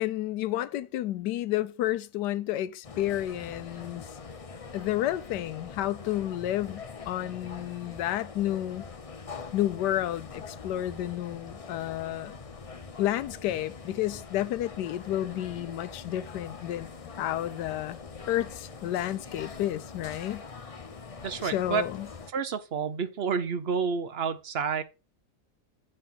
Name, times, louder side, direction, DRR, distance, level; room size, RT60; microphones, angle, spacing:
voice 1, 0.0-4.1 4.7-8.8 9.5-12.4 13.0-16.9 17.2-18.0 18.3-20.4 21.5-22.1, left 13 dB, 90° left, 1.2 m, -31 dB
sound 1, 2.8-22.3, left 4 dB, 40° left, 0.5 m, -43 dB
voice 2, 21.2-21.8 22.3-24.8, right 6 dB, 50° right, 0.8 m, -29 dB
7.6 x 4.3 x 5.7 m
omnidirectional pair, 1.8 m